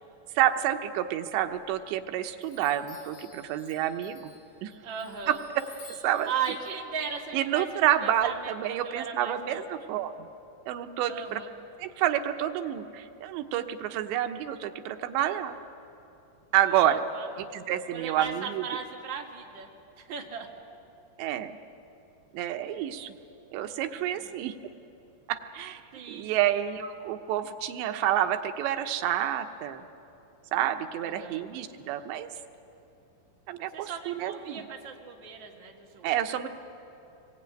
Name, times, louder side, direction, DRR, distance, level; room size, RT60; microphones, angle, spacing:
voice 1, 0.4-4.3 4.6-4.7 5.3-5.4 6.0-6.3 7.3-10.3 10.7-11.4 11.8-15.6 16.5-17.0 17.4-18.6 21.2-21.6 22.3-23.1 23.5-24.6 25.3-25.8 26.1-29.8 30.5-32.3 33.5-34.7 36.0-36.5, right 11 dB, 85° right, 7 dB, 3.2 m, -29 dB
Chime, 1.4-2.0 2.4-8.3, left 3 dB, 55° left, 6.1 m, -54 dB
voice 2, 4.8-5.4 6.2-7.7 8.0-9.6 11.1-11.5 16.6-17.3 17.9-19.7 20.0-20.5 23.9-24.3 25.9-26.6 31.0-31.4 33.7-36.1, right 7 dB, 35° right, 0 dB, 2.2 m, -37 dB
25.5 x 22.0 x 9.1 m, 2.8 s
omnidirectional pair, 4.9 m